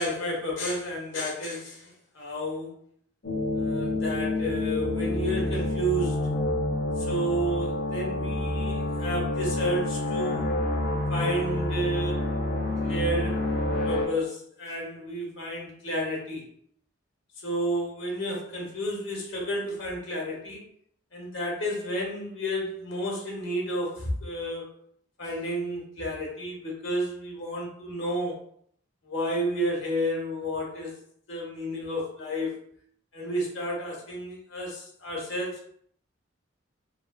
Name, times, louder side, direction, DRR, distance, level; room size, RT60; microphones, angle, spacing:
voice 1, 0.0-2.8 3.5-6.2 7.0-10.5 11.1-12.2 12.8-13.5 13.8-16.5 17.4-20.6 21.1-24.7 25.2-28.4 29.0-31.0 31.3-32.5 33.1-35.7, equal, 70° left, -2 dB, 0.9 m, -31 dB
sound 1, 3.2-14.1, left 1 dB, 55° left, 0.6 m, -28 dB
3.0 x 2.2 x 2.2 m, 0.63 s
head